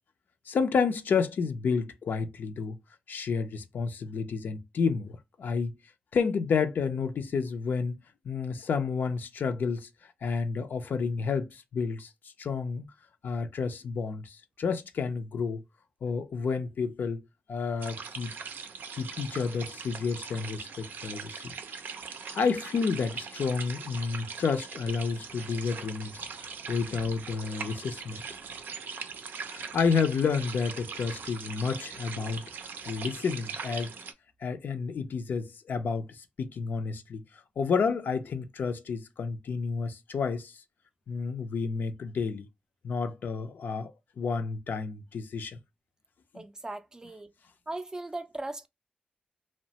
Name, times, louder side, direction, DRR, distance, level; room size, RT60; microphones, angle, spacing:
voice 1, 0.5-2.8 3.1-5.8 6.1-8.0 8.2-9.9 10.2-12.1 12.4-12.9 13.2-15.6 16.0-17.2 17.5-18.3 18.9-21.5 22.3-28.2 29.5-32.4 32.8-33.9 34.4-37.2 37.6-40.6 41.1-42.5 42.8-45.6 46.3-46.4, left 5 dB, 80° left, 0.4 m, -30 dB
sound 1, 17.8-34.1, right 5 dB, 90° right, 0.4 m, -41 dB
voice 2, 46.3-47.3 47.7-48.7, right 2 dB, 20° right, 0.3 m, -38 dB
2.9 x 2.1 x 2.7 m
wide cardioid pair, 95°, 3 cm